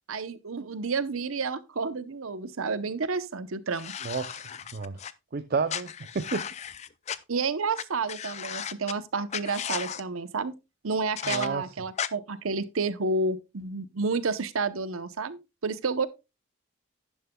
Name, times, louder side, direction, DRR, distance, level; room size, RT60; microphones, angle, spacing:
voice 1, 0.1-3.9 7.3-10.5 10.8-16.1, right 4 dB, 85° right, 0.8 m, -30 dB
sound 1, 3.7-5.1 5.7-7.2 7.7-8.9 9.3-10.0 11.2-11.5 12.0-12.1, left 8 dB, 30° left, 0.4 m, -35 dB
voice 2, 4.0-5.0 5.3-6.5 11.3-11.7, right 4 dB, 45° right, 0.5 m, -31 dB
11.0 x 10.5 x 2.3 m
head